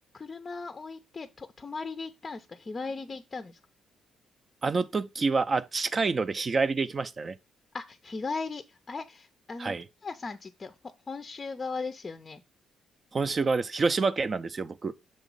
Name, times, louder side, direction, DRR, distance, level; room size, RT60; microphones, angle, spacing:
voice 1, 0.1-3.6 7.7-9.7 10.0-10.7 11.1-12.4, left 4 dB, 30° left, 0.5 m, -37 dB
voice 2, 4.6-7.4 9.6-9.8 13.1-14.9, right 4 dB, 35° right, 0.4 m, -27 dB
6.5 x 3.0 x 5.3 m
cardioid pair, 90°, 0 cm